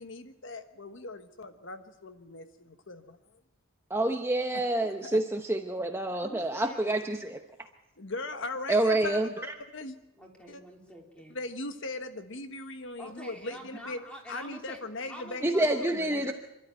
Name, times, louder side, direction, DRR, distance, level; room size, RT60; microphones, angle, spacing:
voice 1, 0.0-3.2 4.8-5.2 8.0-10.0 10.5-10.6 11.3-14.0 14.3-16.3, left 2 dB, 60° left, 8 dB, 1.3 m, -39 dB
voice 2, 3.9-7.4 8.7-9.5 15.4-16.3, right 1 dB, 10° right, 4 dB, 0.9 m, -27 dB
voice 3, 6.2-6.9 10.2-11.4 13.0-16.3, equal, 5° left, 0 dB, 3.3 m, -47 dB
26.5 x 12.5 x 9.1 m, 0.95 s
head